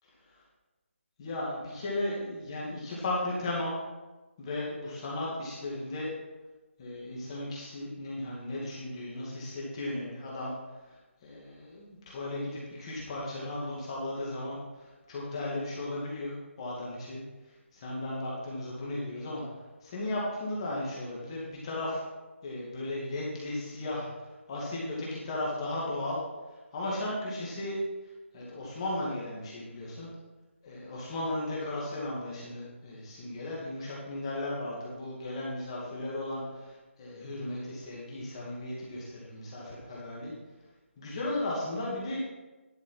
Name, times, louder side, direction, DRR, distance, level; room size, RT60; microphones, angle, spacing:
voice 1, 1.2-3.7 4.4-6.1 6.8-10.5 10.9-17.2 17.5-19.4 19.8-22.0 22.4-26.2 26.5-27.8 28.0-30.1 30.6-40.3 41.0-42.2, left 1 dB, 25° left, -5 dB, 2.3 m, -36 dB
11.0 x 6.2 x 6.0 m, 1.2 s
hypercardioid pair, 170°, 7 cm